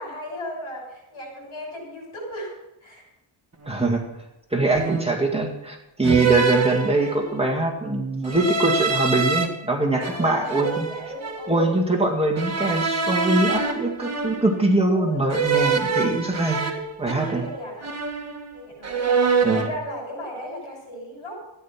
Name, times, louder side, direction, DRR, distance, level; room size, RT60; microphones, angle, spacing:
voice 1, 0.0-2.5 2.8-3.0 10.0-11.8 14.9-15.3 17.0-17.9 18.5-21.5, left 1 dB, 80° left, 0 dB, 6.6 m, -36 dB
sound 1, 3.6-3.9 4.7-5.3 6.0-7.4 8.2-9.5 10.0-11.6 12.4-14.7 15.3-17.6 17.8-18.5 18.8-19.8, right 5 dB, 30° right, 1.8 m, -25 dB
voice 2, 3.7-4.0 4.5-10.9 11.5-16.6 17.0-17.4 19.4-19.7, right 2 dB, 10° right, 0 dB, 2.0 m, -23 dB
14.0 x 10.0 x 6.0 m, 0.93 s
wide cardioid pair, 135°, 48 cm